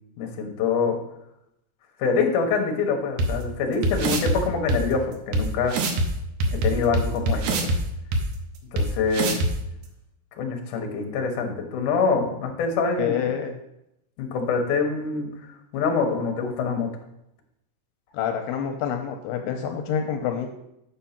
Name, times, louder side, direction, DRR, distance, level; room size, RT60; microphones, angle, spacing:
voice 1, 0.2-1.0 2.0-5.7 6.5-7.7 8.7-9.4 10.4-13.2 14.2-15.3 15.7-16.9, left 5 dB, 65° left, 3 dB, 2.4 m, -25 dB
sound 1, 3.2-3.3 3.8-4.3 4.7-4.8 5.3-5.4 5.7-6.1 6.4-7.8 8.1-8.2 8.8-8.9 9.1-9.5, right 1 dB, 80° right, 1.8 m, -22 dB
voice 2, 13.0-13.6 18.1-20.5, left 8 dB, 85° left, 4 dB, 2.6 m, -27 dB
8.7 x 4.5 x 5.8 m, 0.83 s
omnidirectional pair, 4.7 m